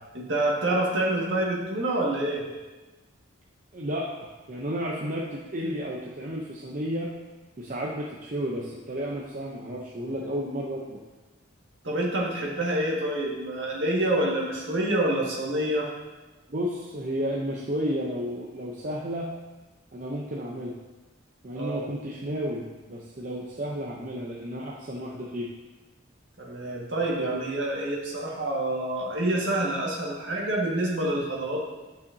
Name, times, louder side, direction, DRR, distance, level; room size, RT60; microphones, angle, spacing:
voice 1, 0.1-2.4 11.8-15.9 21.5-21.9 26.4-31.7, right 1 dB, 65° right, -3 dB, 1.7 m, -27 dB
voice 2, 3.7-7.1 7.6-11.0 16.5-19.3 19.9-20.7 21.4-25.5 30.0-30.1, equal, 40° right, -3 dB, 0.6 m, -32 dB
10.5 x 5.7 x 2.7 m, 1.2 s
head